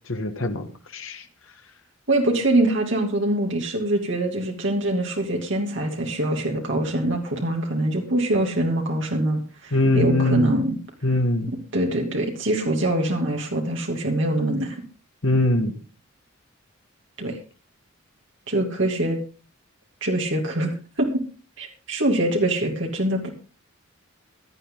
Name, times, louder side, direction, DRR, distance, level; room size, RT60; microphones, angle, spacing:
voice 1, 0.1-1.2 9.7-10.5 11.0-11.5 15.2-15.7, left 1 dB, 70° left, 5 dB, 1.6 m, -22 dB
voice 2, 2.1-10.8 11.5-14.8 17.2-17.4 18.5-19.2 20.0-21.2 21.6-23.3, right 1 dB, 60° right, 1 dB, 2.7 m, -24 dB
17.0 x 11.0 x 3.9 m, 0.36 s
head